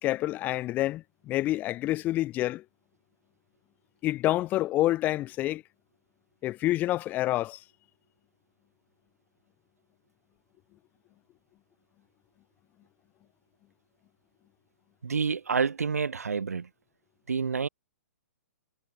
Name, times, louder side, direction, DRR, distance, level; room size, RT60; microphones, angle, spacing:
voice 1, 0.0-2.6 4.0-5.6 6.4-7.6, left 15 dB, 20° left, 0.5 m, -28 dB
voice 2, 15.0-16.7 17.3-17.7, right 5 dB, 70° right, 0.9 m, -28 dB
figure-of-eight pair, 120°, 8 cm